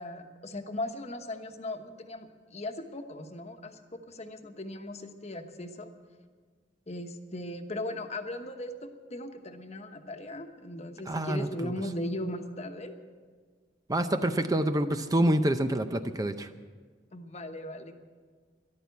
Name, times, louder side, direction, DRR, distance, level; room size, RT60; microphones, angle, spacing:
voice 1, 0.0-5.9 6.9-13.0 17.1-17.9, left 1 dB, 40° left, 6 dB, 1.2 m, -38 dB
voice 2, 11.1-11.7 13.9-16.5, right 1 dB, 20° right, 8 dB, 0.6 m, -27 dB
14.0 x 11.5 x 8.3 m, 1.6 s
head